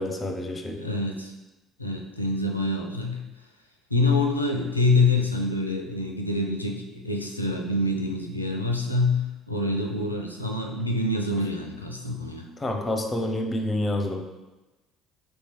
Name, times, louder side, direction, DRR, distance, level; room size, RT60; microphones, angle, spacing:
voice 1, 0.0-0.8 12.6-14.2, left 1 dB, 20° left, 4 dB, 0.7 m, -28 dB
voice 2, 0.7-1.3 1.8-3.2 3.9-12.5, left 2 dB, 90° left, 2 dB, 0.4 m, -26 dB
3.3 x 3.0 x 4.5 m, 1.1 s
figure-of-eight pair, 50°, 0 cm